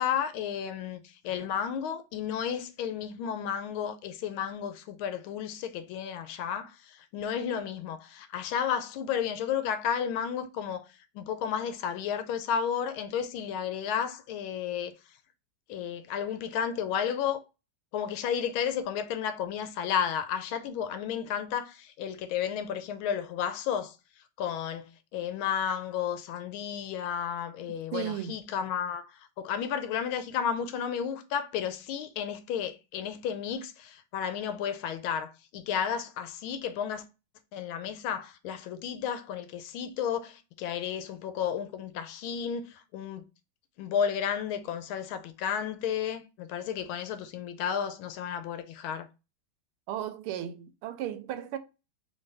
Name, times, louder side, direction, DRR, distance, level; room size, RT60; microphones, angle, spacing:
voice 1, 0.0-10.9 11.1-14.9 15.7-17.4 17.9-24.0 24.4-37.0 37.5-43.2 43.8-49.1, left 8 dB, 80° left, 1.4 m, -32 dB
voice 2, 27.9-28.4 49.9-51.6, right 11 dB, 80° right, 1.5 m, -35 dB
4.5 x 3.2 x 3.3 m
omnidirectional pair, 2.4 m